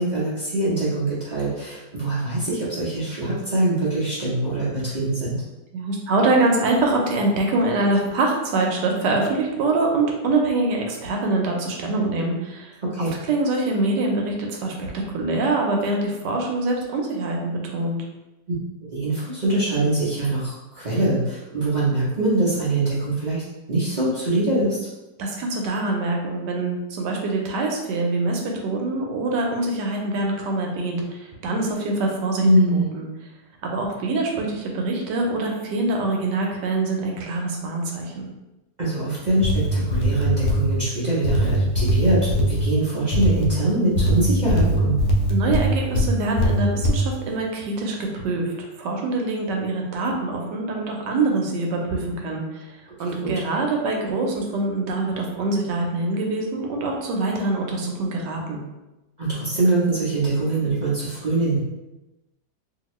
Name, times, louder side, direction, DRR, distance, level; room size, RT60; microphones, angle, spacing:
voice 1, 0.0-5.4 12.9-13.1 18.9-23.4 23.7-24.8 32.4-32.9 38.8-45.0 53.2-53.3 59.2-61.6, right 2 dB, 60° right, -9 dB, 0.4 m, -23 dB
voice 2, 5.7-12.8 13.3-18.0 25.2-32.4 32.7-33.1 33.6-38.3 45.3-58.6, right 2 dB, 75° right, 1 dB, 1.2 m, -24 dB
sound 1, 39.3-40.7 41.2-42.6 43.1-43.5 44.0-46.1 46.4-47.0, equal, 75° left, 1.2 m, -21 dB
2.8 x 2.8 x 3.0 m, 1.0 s
omnidirectional pair, 2.0 m